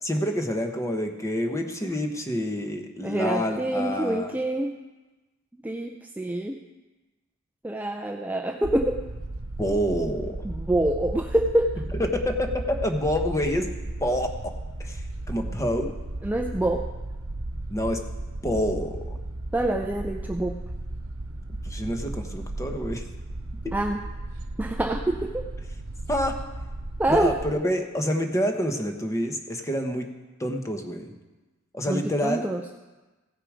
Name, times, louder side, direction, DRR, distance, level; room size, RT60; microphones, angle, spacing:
voice 1, 0.0-4.3 9.6-10.4 12.0-13.7 14.0-14.5 14.8-15.9 17.7-18.0 18.4-19.2 21.6-23.0 23.6-23.7 26.1-26.4 27.1-30.1 30.4-31.1 31.7-32.4, equal, 15° left, 4 dB, 1.0 m, -27 dB
voice 2, 3.0-4.7 5.6-6.6 7.6-9.0 10.4-11.8 16.2-16.9 19.5-20.6 23.7-24.0 24.6-25.4 27.0-27.3 31.9-32.6, right 1 dB, 10° right, 3 dB, 0.4 m, -26 dB
sound 1, 8.6-27.5, right 1 dB, 85° right, 0.9 m, -35 dB
16.0 x 6.7 x 4.9 m, 1.2 s
head